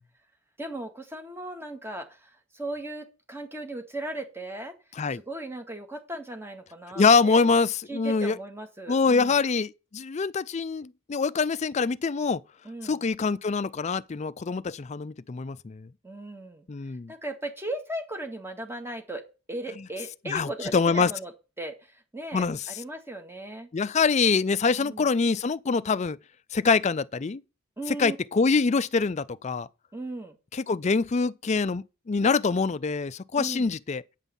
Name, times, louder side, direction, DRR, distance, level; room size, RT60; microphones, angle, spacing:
voice 1, 0.6-4.7 5.1-7.4 7.9-9.4 12.6-13.0 16.0-16.7 17.1-21.3 21.6-23.7 24.8-25.1 27.8-28.2 29.9-30.4 33.4-33.7, right 1 dB, 10° right, 2.0 m, -37 dB
voice 2, 7.0-8.4 8.9-12.4 12.8-15.9 16.7-17.1 20.3-21.1 22.3-22.6 23.7-26.2 26.5-27.4 27.9-29.7 30.5-34.0, left 4 dB, 35° left, 0.4 m, -25 dB
9.1 x 5.5 x 6.9 m
head